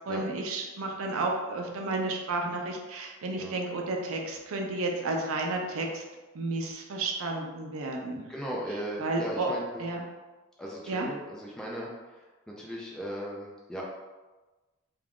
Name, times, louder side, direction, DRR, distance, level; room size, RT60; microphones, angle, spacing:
voice 1, 0.1-6.0 6.3-8.3 9.0-9.5 9.8-10.0 10.9-11.1, right 2 dB, 80° right, 2 dB, 0.5 m, -32 dB
voice 2, 8.3-9.8 10.6-13.8, equal, 5° left, -4 dB, 0.3 m, -37 dB
2.4 x 2.3 x 3.4 m, 1.2 s
head